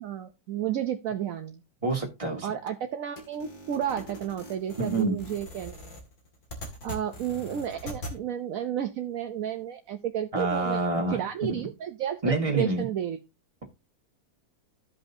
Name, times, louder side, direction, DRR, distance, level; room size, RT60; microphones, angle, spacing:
voice 1, 0.0-1.6 2.4-5.8 6.8-10.8 11.1-13.2, right 9 dB, 70° right, 7 dB, 1.1 m, -32 dB
voice 2, 1.8-2.5 4.8-5.2 10.3-11.7 12.2-12.9, right 3 dB, 20° right, 1 dB, 2.0 m, -27 dB
sound 1, 3.2-8.2, equal, 75° left, 2.7 m, -42 dB
14.5 x 5.5 x 2.7 m, 0.27 s
omnidirectional pair, 1.6 m